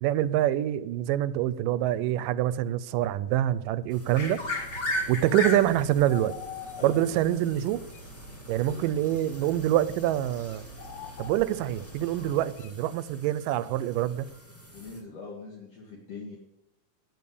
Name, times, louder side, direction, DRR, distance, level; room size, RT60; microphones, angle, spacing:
voice 1, 0.0-4.4 5.1-6.3 6.8-7.8 8.5-10.7 11.2-14.3, right 12 dB, 80° right, 2.2 m, -26 dB
sound 1, 3.9-15.0, equal, 5° left, 1.3 m, -51 dB
sound 2, 4.1-12.4, left 1 dB, 25° left, 1.9 m, -37 dB
sound 3, 5.4-5.7 6.1-7.4 7.9-8.0 8.7-9.3 10.5-11.8 12.6-12.7, left 9 dB, 75° left, 2.4 m, -43 dB
voice 2, 6.8-7.2 8.5-8.7 14.7-16.4, left 3 dB, 50° left, 3.1 m, -42 dB
12.5 x 9.1 x 8.4 m
omnidirectional pair, 3.9 m